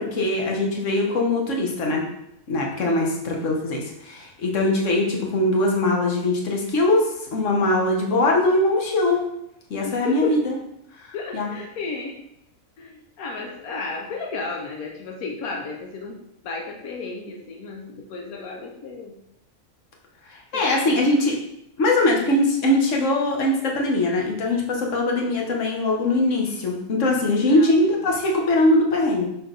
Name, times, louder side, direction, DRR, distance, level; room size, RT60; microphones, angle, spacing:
voice 1, 0.0-2.0 2.5-9.2 9.7-10.6 11.0-11.1 11.3-11.5 20.3-21.4 21.8-29.3, left 2 dB, 60° left, 0 dB, 1.5 m, -21 dB
voice 2, 9.8-10.4 11.1-12.2 12.8-19.1 20.5-21.1 27.5-27.7 27.9-28.0, left 4 dB, 85° left, 0 dB, 1.3 m, -33 dB
5.9 x 5.1 x 3.9 m, 0.79 s
omnidirectional pair, 1.5 m